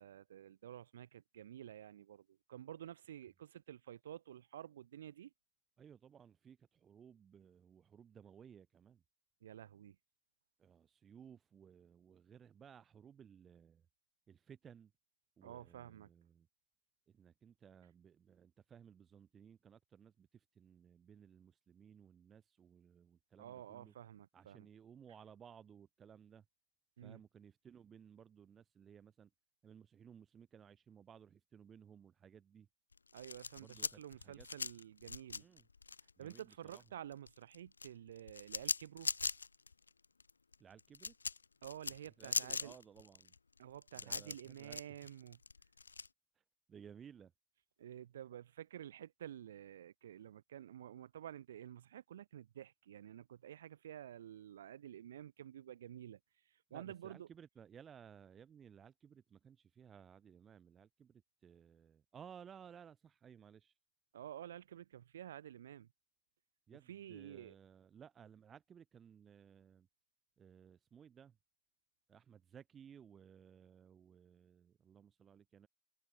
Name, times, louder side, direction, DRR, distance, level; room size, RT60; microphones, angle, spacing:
voice 1, 0.0-5.3 9.4-10.0 15.4-16.1 23.4-24.7 27.0-27.2 33.1-35.5 36.2-39.1 41.6-42.7 43.6-45.4 47.8-56.2 56.7-57.3 64.1-65.9 66.9-67.6, right 10 dB, 60° right, 5.9 m, -51 dB
voice 2, 5.8-9.0 10.6-13.8 14.3-14.9 15.4-16.5 17.1-23.9 24.3-26.4 27.0-29.3 29.6-32.7 33.6-34.5 35.3-35.7 36.2-36.8 40.6-41.1 42.0-43.3 43.9-45.0 46.7-47.3 56.7-63.7 66.7-69.9 70.4-71.4 72.1-75.7, right 8 dB, 20° right, 3.0 m, -59 dB
sound 1, 32.9-36.8 37.1-46.1, left 4 dB, 75° left, 0.3 m, -41 dB
figure-of-eight pair, 90°, 0 cm